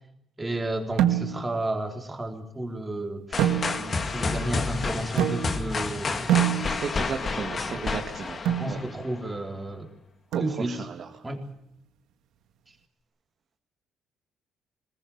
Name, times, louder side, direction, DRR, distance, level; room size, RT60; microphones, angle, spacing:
voice 1, 0.4-6.6 7.6-7.9 8.5-9.9 10.4-10.8 11.2-11.4, right 1 dB, 15° right, 3 dB, 4.0 m, -33 dB
sound 1, 1.0-1.6 3.4-4.1 5.2-5.8 6.3-7.1 8.4-8.8 10.3-10.9, right 11 dB, 90° right, 1.8 m, -26 dB
sound 2, 3.3-9.2, left 4 dB, 35° left, 2.1 m, -30 dB
voice 2, 6.8-8.4 8.7-8.8 10.3-11.2, right 6 dB, 50° right, 3 dB, 2.2 m, -34 dB
21.5 x 19.5 x 8.8 m, 0.78 s
cardioid pair, 105°, 0 cm